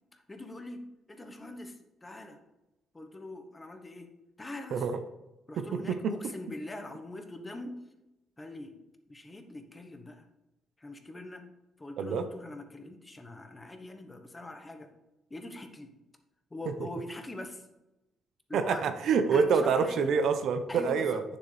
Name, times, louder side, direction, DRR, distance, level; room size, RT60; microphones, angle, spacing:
voice 1, 0.1-0.8 1.1-2.4 2.9-4.1 4.4-4.9 5.5-7.7 8.4-8.7 9.1-10.3 10.8-11.4 11.8-14.9 15.3-15.9 16.5-17.7 18.5-18.9 19.3-20.1 20.7-21.2, left 2 dB, 20° left, 6 dB, 1.1 m, -43 dB
voice 2, 5.6-6.2 12.0-12.2 18.5-21.2, right 5 dB, 70° right, 8 dB, 0.7 m, -27 dB
9.2 x 7.1 x 3.3 m, 0.98 s
cardioid pair, 90°, 0 cm